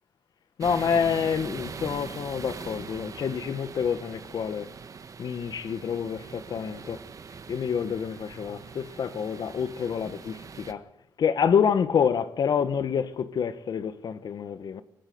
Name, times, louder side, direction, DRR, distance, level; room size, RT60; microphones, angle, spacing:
voice 1, 0.6-4.7 5.2-7.0 7.5-10.9 11.2-14.8, left 7 dB, 65° left, 1.5 m, -27 dB
sound 1, 0.6-10.7, right 5 dB, 50° right, 1.7 m, -42 dB
25.0 x 16.0 x 7.8 m
cardioid pair, 90°, 7 cm